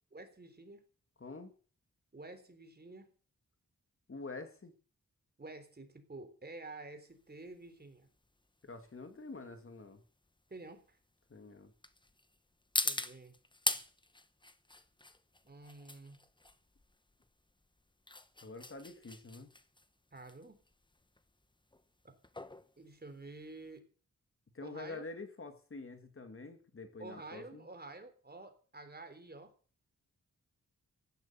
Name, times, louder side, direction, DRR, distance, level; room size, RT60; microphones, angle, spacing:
voice 1, 0.1-0.8 2.1-3.1 5.4-8.1 10.5-11.0 12.8-13.4 15.5-16.2 20.1-20.6 22.8-23.8 24.6-25.0 27.0-29.5, right 2 dB, 30° right, 7 dB, 3.7 m, -50 dB
voice 2, 1.2-1.5 4.1-4.7 8.6-10.0 11.3-11.7 18.4-19.5 24.5-27.7, left 3 dB, 40° left, 7 dB, 2.2 m, -47 dB
sound 1, 7.1-23.8, left 2 dB, 15° left, 1.0 m, -42 dB
16.0 x 12.0 x 6.9 m, 0.40 s
wide cardioid pair, 135°, 32 cm